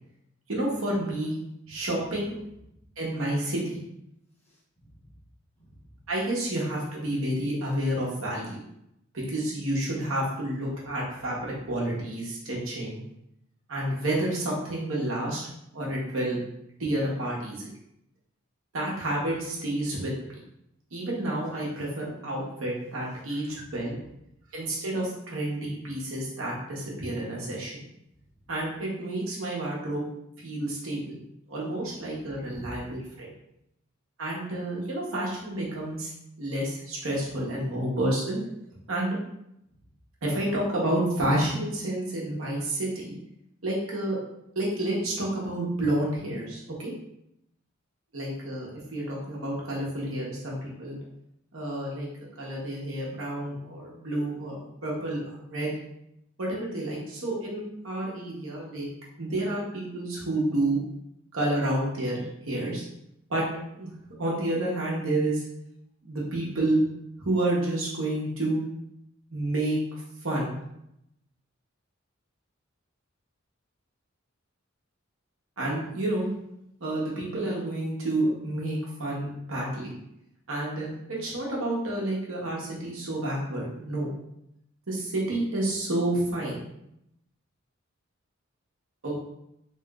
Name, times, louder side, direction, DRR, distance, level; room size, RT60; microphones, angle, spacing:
voice 1, 0.5-1.3 1.7-2.3 3.0-3.8 6.1-8.6 9.1-13.0 13.7-16.4 16.8-17.7 18.7-20.4 20.9-24.0 24.5-27.8 28.5-30.1 30.4-31.2 31.5-33.3 34.2-36.1 36.4-38.4 38.9-39.2 40.2-43.2 43.6-44.2 44.5-46.9 48.1-51.0 51.5-52.1 52.4-55.7 56.4-58.9 59.2-60.8 61.3-62.8 63.3-63.4 63.7-63.9 64.2-65.4 66.0-66.8 67.2-68.6 69.3-69.8 70.2-70.5 75.6-76.3 76.8-79.9 80.5-84.1 84.9-86.6 89.0-89.2, right 1 dB, 80° right, -4 dB, 1.0 m, -29 dB
voice 2, 4.4-5.2 5.6-6.0 32.3-32.8 39.7-39.8, equal, 30° left, -7 dB, 1.1 m, -49 dB
3.0 x 2.9 x 2.3 m, 0.80 s
head